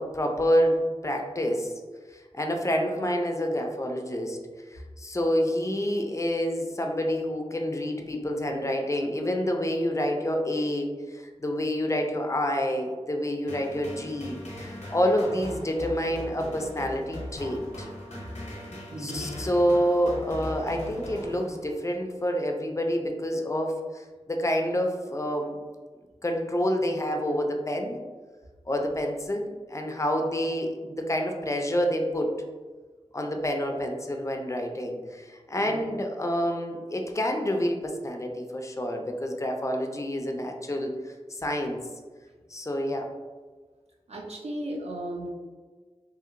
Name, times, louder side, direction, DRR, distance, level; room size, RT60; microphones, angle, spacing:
voice 1, 0.0-1.7 2.1-4.4 4.7-17.9 19.0-25.6 26.2-28.0 28.7-32.3 33.1-40.9 41.3-41.8 42.5-43.1, equal, 25° left, 3 dB, 0.4 m, -28 dB
sound 1, 13.5-22.0, left 1 dB, 80° left, 0.7 m, -39 dB
voice 2, 18.9-19.3 35.5-35.9 44.1-45.3, right 1 dB, 65° right, -2 dB, 0.6 m, -36 dB
2.8 x 2.8 x 2.5 m, 1.4 s
wide cardioid pair, 65°, 12 cm